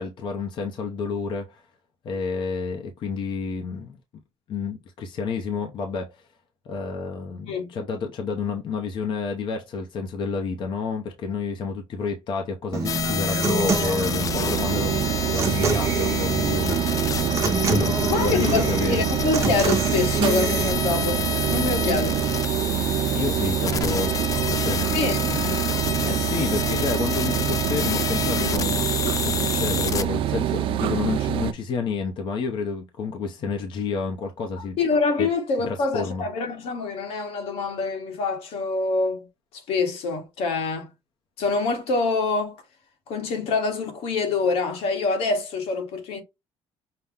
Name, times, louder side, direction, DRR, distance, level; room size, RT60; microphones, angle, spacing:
voice 1, 0.0-1.6 2.0-4.0 4.5-6.3 6.7-17.1 17.4-19.0 21.8-22.0 23.1-25.0 25.3-34.8 35.2-35.3 35.7-36.2, left 5 dB, 55° left, 0.8 m, -30 dB
Human voice / Acoustic guitar, 12.7-20.7, right 4 dB, 30° right, 0.9 m, -28 dB
sound 1, 12.8-30.0, left 7 dB, 35° left, 0.3 m, -29 dB
sound 2, 13.8-31.5, right 11 dB, 60° right, 0.4 m, -26 dB
voice 2, 18.1-22.2 24.9-25.2 34.8-39.3 39.7-40.9 41.4-42.6 43.1-46.2, left 4 dB, 85° left, 1.4 m, -25 dB
5.7 x 2.2 x 3.6 m
cardioid pair, 130°, 10 cm